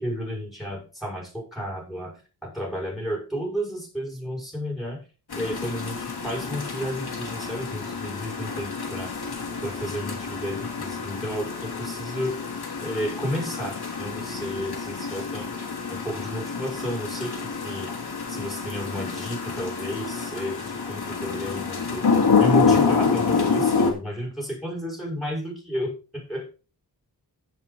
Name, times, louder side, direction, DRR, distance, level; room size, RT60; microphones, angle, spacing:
voice 1, 0.0-5.0 5.4-9.1 9.6-12.3 12.8-15.5 15.9-17.9 18.3-26.5, equal, ahead, 0 dB, 5.6 m, -32 dB
sound 1, 5.3-23.9, left 5 dB, 70° left, 3.0 m, -27 dB
15.5 x 5.6 x 4.0 m, 0.34 s
wide cardioid pair, 90°, 40 cm